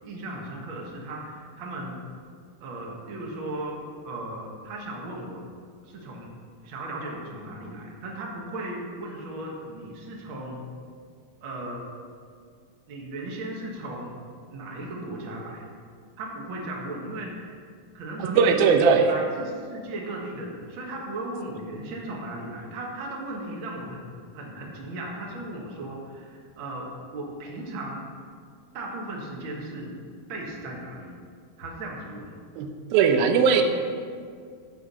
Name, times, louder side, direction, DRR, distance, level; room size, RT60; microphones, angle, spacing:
voice 1, 0.0-2.0 2.6-5.5 5.8-6.3 6.6-10.6 11.4-11.9 12.9-14.1 14.5-15.7 16.2-17.6 17.9-18.7 19.0-24.1 24.3-28.0 28.7-29.9 30.3-31.1 31.6-32.4 33.5-33.6, right 1 dB, 50° right, -2 dB, 1.7 m, -36 dB
voice 2, 18.4-19.1 32.6-32.7 32.9-33.6, right 6 dB, 85° right, 5 dB, 2.6 m, -18 dB
14.5 x 5.0 x 5.5 m, 2.1 s
omnidirectional pair, 4.1 m